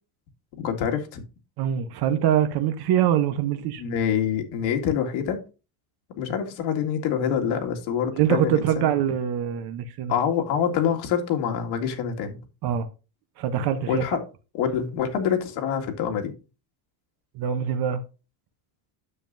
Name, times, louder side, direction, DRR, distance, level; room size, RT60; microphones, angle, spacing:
voice 1, 0.6-1.2 3.8-5.4 6.2-8.9 10.1-12.4 13.9-14.2 14.5-16.3, left 8 dB, 75° left, 2.2 m, -26 dB
voice 2, 1.6-3.8 8.2-10.1 12.6-12.9 13.4-14.0 17.3-18.0, right 10 dB, 55° right, 0.9 m, -24 dB
9.9 x 7.3 x 2.6 m
cardioid pair, 155°, 46 cm